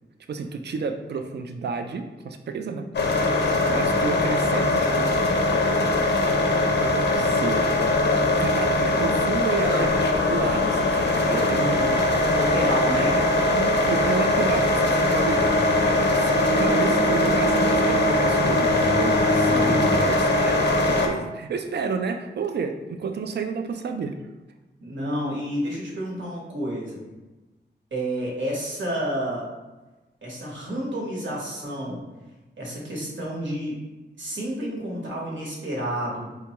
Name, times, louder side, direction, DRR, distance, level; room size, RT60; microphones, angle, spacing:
voice 1, 0.3-2.9 3.7-5.1 6.8-7.9 8.4-12.0 13.5-15.8 16.1-19.2 19.4-24.2, right 5 dB, 65° right, 6 dB, 0.4 m, -31 dB
sound 1, 2.9-21.1, left 2 dB, 65° left, 0.5 m, -21 dB
voice 2, 12.3-13.2 19.3-19.9 24.8-27.0 27.9-29.5 30.2-32.1 32.6-33.8 34.2-36.3, right 1 dB, 80° right, -4 dB, 1.2 m, -30 dB
Bowed string instrument, 15.2-20.1, equal, 5° left, 0.4 m, -28 dB
4.7 x 2.2 x 2.9 m, 1.1 s
wide cardioid pair, 145°, 19 cm